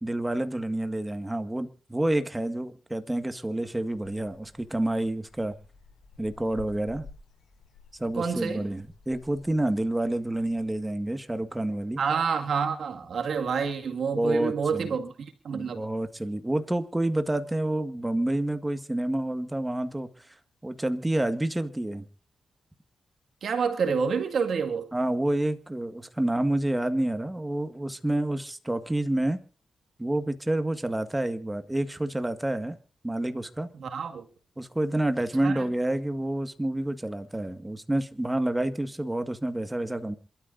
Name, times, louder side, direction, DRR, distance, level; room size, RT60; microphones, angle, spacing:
voice 1, 0.0-5.6 6.2-7.1 8.0-12.0 14.1-14.9 15.5-20.3 20.6-22.1 24.9-29.4 30.0-32.8 33.0-33.7 34.6-40.2, right 1 dB, 10° right, 1.9 m, -28 dB
sound 1, 3.8-10.8, left 4 dB, 85° left, 5.8 m, -52 dB
voice 2, 8.1-8.7 12.0-15.8 23.4-24.9 33.7-34.2 35.4-35.6, right 6 dB, 70° right, 2.1 m, -28 dB
27.5 x 13.0 x 2.7 m
cardioid pair, 85°, 0 cm